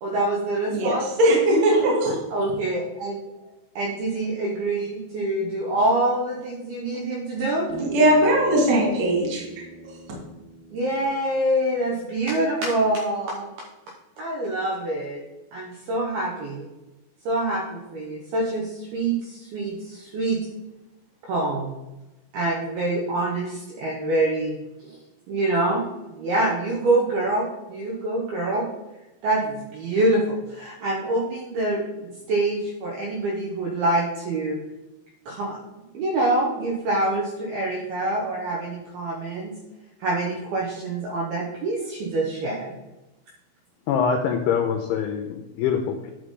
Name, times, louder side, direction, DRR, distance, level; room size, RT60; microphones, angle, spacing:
voice 1, 0.0-1.1 2.1-3.2 3.8-7.7 10.7-13.5 14.2-15.2 15.5-16.7 17.3-20.4 21.2-21.7 22.3-24.5 24.8-25.0 25.3-28.7 29.2-34.6 35.3-35.6 35.9-39.6 40.0-42.7, right 2 dB, 75° right, -1 dB, 2.3 m, -25 dB
voice 2, 0.7-2.2 7.8-9.5, right 1 dB, 45° right, -4 dB, 2.7 m, -19 dB
Bass guitar, 7.7-12.0, right 2 dB, 5° right, 1.0 m, -41 dB
voice 3, 43.9-46.1, left 7 dB, 85° left, 5 dB, 2.7 m, -24 dB
11.5 x 5.8 x 3.7 m, 1.0 s
omnidirectional pair, 5.8 m